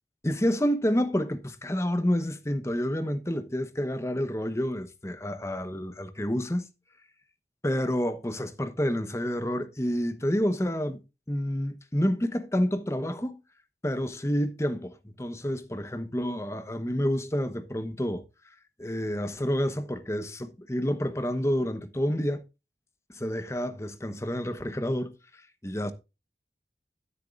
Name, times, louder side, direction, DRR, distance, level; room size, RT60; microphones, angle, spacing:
voice 1, 0.2-6.7 7.6-11.0 11.3-13.4 13.8-18.2 18.8-22.4 23.1-25.1 25.6-25.9, equal, 15° left, 1.0 m, -29 dB
13.0 x 8.0 x 2.5 m
head